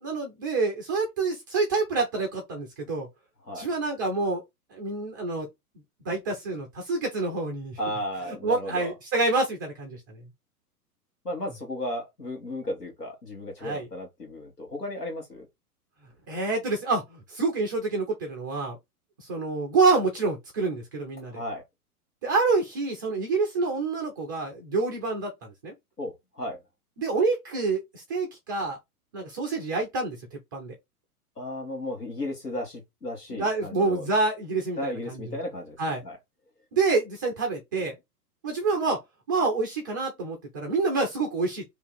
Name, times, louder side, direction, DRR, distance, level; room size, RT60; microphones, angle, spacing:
voice 1, 0.0-3.1 3.5-4.4 4.7-5.5 6.0-7.8 8.3-10.2 13.6-13.9 16.3-18.8 19.2-21.4 22.2-25.7 27.0-28.8 29.1-30.7 33.3-35.4 35.8-36.0 36.7-38.0 38.4-39.0 39.3-41.6, right 3 dB, 15° right, 0.4 m, -27 dB
voice 2, 7.8-8.9 11.2-15.5 21.3-21.6 26.0-26.6 31.4-34.0 34.8-35.8 36.0-36.2, left 1 dB, 85° left, 1.6 m, -34 dB
2.8 x 2.7 x 3.9 m
figure-of-eight pair, 110°, 46 cm